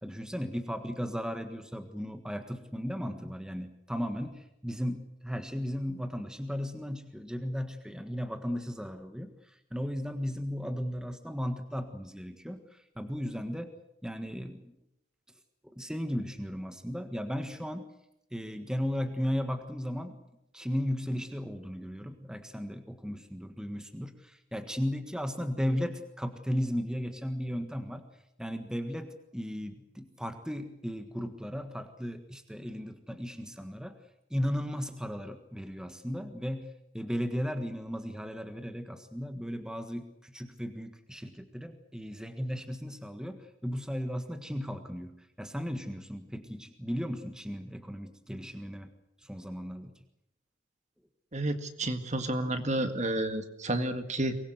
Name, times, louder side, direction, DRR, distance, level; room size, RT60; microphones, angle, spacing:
voice 1, 0.0-13.7 14.0-14.7 15.6-17.8 18.3-20.2 20.5-28.0 28.4-33.9 34.3-48.9 49.2-49.9, equal, 5° right, 7 dB, 1.5 m, -36 dB
voice 2, 51.3-54.4, right 1 dB, 35° right, 8 dB, 1.9 m, -30 dB
23.5 x 20.5 x 8.0 m, 0.81 s
head